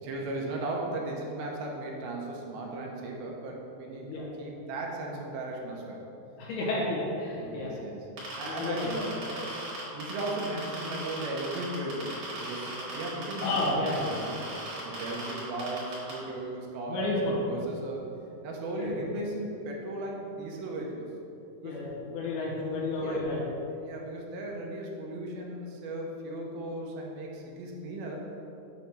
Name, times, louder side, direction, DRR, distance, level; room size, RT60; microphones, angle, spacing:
voice 1, 0.0-6.0 7.3-8.1 8.4-9.5 9.9-14.4 14.8-18.1 18.4-21.1 21.6-21.8 22.5-23.3 23.7-28.2, right 2 dB, 80° right, -1 dB, 2.5 m, -36 dB
voice 2, 6.4-7.7 8.4-8.9 13.4-14.0 16.9-17.3 18.8-19.1 21.6-23.4, left 2 dB, 80° left, -5 dB, 3.3 m, -31 dB
sound 1, 8.2-16.1, right 2 dB, 60° right, 3.1 m, -38 dB
7.9 x 3.1 x 5.8 m, 2.8 s
omnidirectional pair, 4.5 m